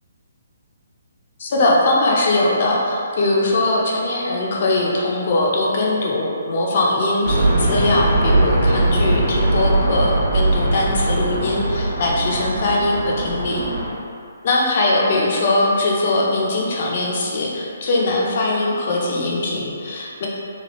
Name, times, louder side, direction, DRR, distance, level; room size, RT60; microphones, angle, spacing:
voice 1, 1.4-13.6 14.4-20.3, left 2 dB, 45° left, -3 dB, 0.6 m, -20 dB
sound 1, 7.2-13.9, right 2 dB, 40° right, 0.9 m, -20 dB
3.0 x 2.3 x 3.0 m, 2.4 s
figure-of-eight pair, 135°, 0 cm